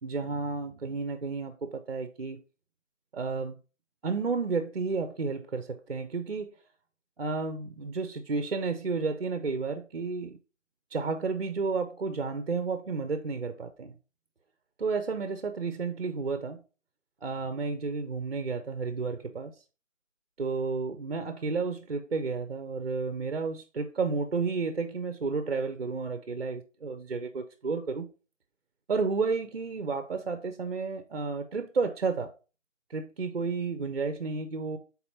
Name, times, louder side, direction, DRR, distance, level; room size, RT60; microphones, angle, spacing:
voice 1, 0.0-2.4 3.1-3.6 4.0-6.5 7.2-10.4 10.9-14.0 14.8-16.6 17.2-19.5 20.4-28.1 28.9-32.3 32.9-34.8, right 4 dB, 55° right, 0.5 m, -31 dB
3.9 x 2.9 x 4.1 m
figure-of-eight pair, 170°, 37 cm